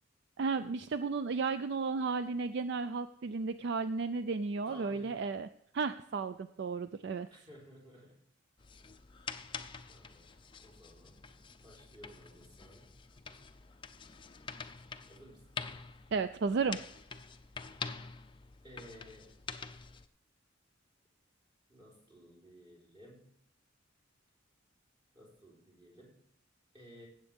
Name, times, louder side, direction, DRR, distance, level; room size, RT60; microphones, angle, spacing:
voice 1, 0.4-5.5 5.7-7.3 16.1-16.8, right 4 dB, 55° right, 12 dB, 0.4 m, -33 dB
voice 2, 4.7-5.2 7.3-8.2 9.9-10.3 10.6-11.2 11.6-13.0 15.1-15.5 18.6-19.3 21.7-23.3 25.1-26.2 26.7-27.1, equal, 25° right, -4 dB, 3.9 m, -55 dB
sound 1, 8.6-20.1, left 5 dB, 25° left, 0.5 m, -46 dB
16.5 x 7.6 x 3.6 m, 0.70 s
head